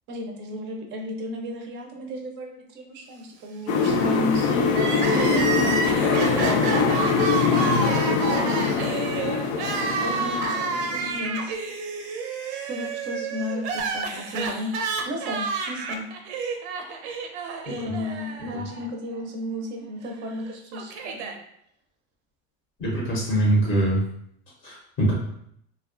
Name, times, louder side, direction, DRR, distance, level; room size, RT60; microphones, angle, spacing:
voice 1, 0.1-7.1 7.5-8.9 10.0-11.5 12.5-14.8 15.1-16.1 17.7-21.3, left 1 dB, 35° right, 3 dB, 0.4 m, -33 dB
sound 1, 3.7-11.3, left 5 dB, 85° left, 0.5 m, -23 dB
Crying sobbing, 4.7-18.9 19.1-19.2 20.2-21.4, right 4 dB, 90° right, 0.5 m, -30 dB
voice 2, 17.7-18.0 18.5-18.6 22.8-24.0 24.6-25.1, right 1 dB, 25° left, -3 dB, 0.5 m, -24 dB
2.4 x 2.2 x 2.4 m, 0.71 s
supercardioid pair, 140°, 33 cm